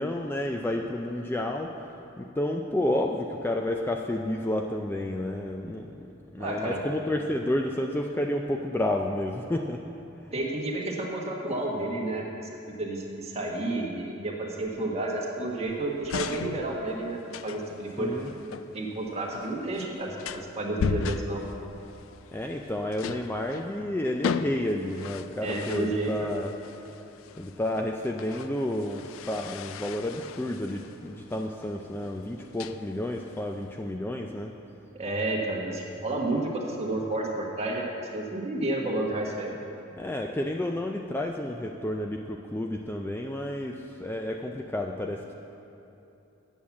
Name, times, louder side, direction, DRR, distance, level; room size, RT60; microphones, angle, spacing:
voice 1, 0.0-1.8 2.2-6.1 6.3-9.8 10.2-10.3 18.0-18.3 22.3-26.5 27.4-34.5 40.0-45.3, left 1 dB, 10° left, 2 dB, 0.3 m, -30 dB
voice 2, 6.4-6.8 10.3-21.4 25.4-26.1 34.9-37.8 38.1-39.5, right 2 dB, 35° right, -2 dB, 1.4 m, -31 dB
sound 1, 15.5-33.9, left 5 dB, 90° left, 0.4 m, -38 dB
8.6 x 7.2 x 7.1 m, 2.8 s
head